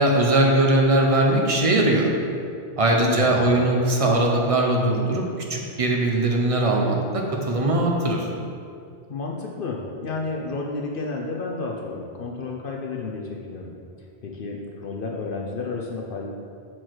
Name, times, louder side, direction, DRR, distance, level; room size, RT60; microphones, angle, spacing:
voice 1, 0.0-2.1 2.8-5.2 5.5-8.2, right 1 dB, 35° right, 0 dB, 0.7 m, -20 dB
voice 2, 3.0-3.6 9.1-13.7 14.2-16.3, left 3 dB, 60° left, 0 dB, 0.7 m, -31 dB
6.0 x 4.5 x 4.5 m, 2.4 s
omnidirectional pair, 1.2 m